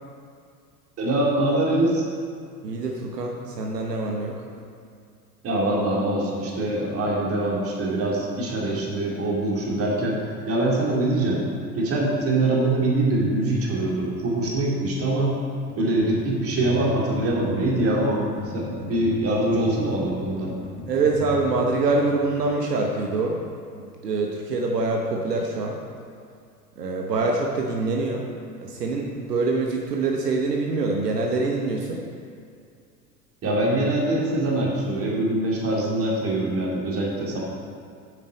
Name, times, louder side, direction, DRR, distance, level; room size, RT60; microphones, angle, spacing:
voice 1, 1.0-2.0 5.4-11.4 11.7-15.4 15.8-18.2 18.5-20.5 33.4-37.4, right 1 dB, 30° right, -3 dB, 2.7 m, -23 dB
voice 2, 2.6-4.4 20.9-23.4 23.7-25.8 26.8-28.3 28.6-32.0, right 3 dB, 75° right, 0 dB, 1.1 m, -25 dB
sound 1, 15.7-22.5, left 4 dB, 25° left, 1.1 m, -38 dB
9.0 x 7.9 x 5.1 m, 2.3 s
figure-of-eight pair, 85°, 49 cm